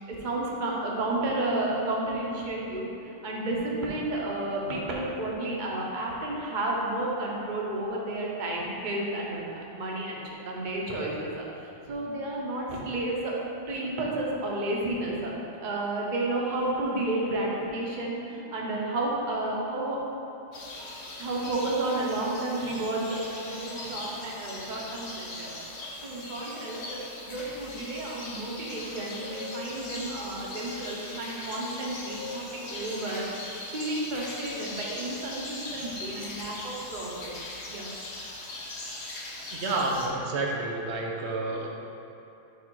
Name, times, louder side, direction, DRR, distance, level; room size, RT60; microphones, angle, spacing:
voice 1, 0.1-13.3 13.7-15.3 15.6-20.0 21.2-25.6 26.0-27.0 27.2-33.3 33.7-37.4 37.7-37.9, right 2 dB, 45° right, -3 dB, 1.0 m, -31 dB
sound 1, 20.5-40.1, left 2 dB, 65° left, 1.2 m, -40 dB
voice 2, 39.5-41.7, right 2 dB, 65° right, 0 dB, 0.9 m, -29 dB
6.5 x 3.6 x 4.6 m, 2.9 s
omnidirectional pair, 1.3 m